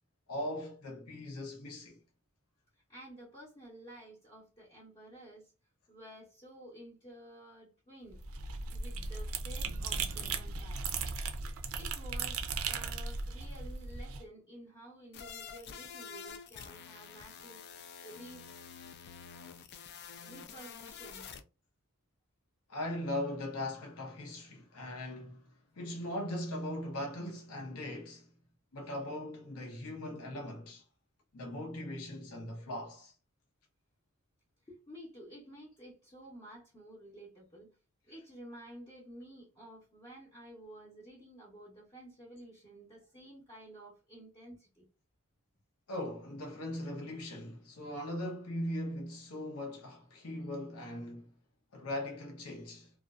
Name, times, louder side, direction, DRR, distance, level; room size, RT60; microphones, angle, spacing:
voice 1, 0.3-2.0 22.7-28.3 28.7-30.8 31.3-33.1 45.9-51.3 51.7-52.9, left 1 dB, 75° left, 0.7 m, -39 dB
voice 2, 2.9-5.5 5.9-8.2 8.7-10.9 11.7-18.5 20.2-21.4 34.7-37.8 38.1-44.8, right 1 dB, 20° left, 0.7 m, -52 dB
sound 1, 8.1-14.2, right 4 dB, 65° right, 0.4 m, -37 dB
sound 2, 15.1-21.4, left 6 dB, 50° left, 0.3 m, -48 dB
2.4 x 2.2 x 2.3 m
head